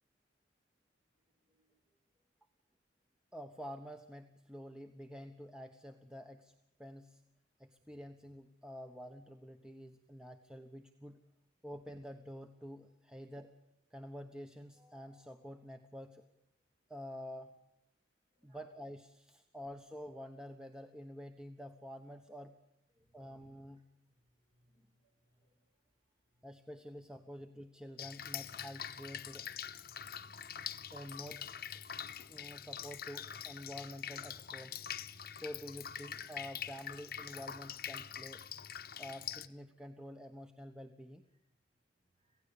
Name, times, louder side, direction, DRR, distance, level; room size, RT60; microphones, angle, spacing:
voice 1, 1.4-1.7 18.5-18.6 22.9-23.4 24.3-24.9 25.2-25.7 42.2-42.4, right 1 dB, 30° right, 2 dB, 6.8 m, -74 dB
voice 2, 3.3-6.5 6.8-7.2 7.6-11.2 11.6-13.5 13.9-16.2 16.9-17.5 18.4-22.6 23.1-23.9 26.4-29.5 30.9-31.6 31.8-34.8 35.3-38.4 39.0-41.2, equal, 5° right, 5 dB, 1.1 m, -48 dB
Drip, 28.0-39.5, left 9 dB, 60° left, 1.1 m, -44 dB
26.5 x 17.0 x 7.0 m, 0.92 s
head